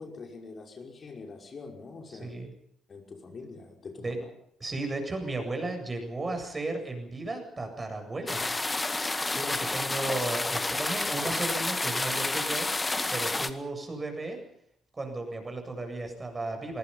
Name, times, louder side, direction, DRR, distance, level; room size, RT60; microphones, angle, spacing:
voice 1, 0.0-2.3 2.9-4.3, left 4 dB, 40° left, 2 dB, 5.7 m, -44 dB
voice 2, 2.1-2.5 4.0-4.2 4.6-8.4 9.3-12.7 13.1-14.4 14.9-16.8, right 2 dB, 25° right, 5 dB, 8.0 m, -34 dB
sound 1, 8.3-13.5, left 2 dB, 20° left, 2.0 m, -30 dB
25.5 x 24.0 x 5.7 m, 0.70 s
figure-of-eight pair, 45°, 0 cm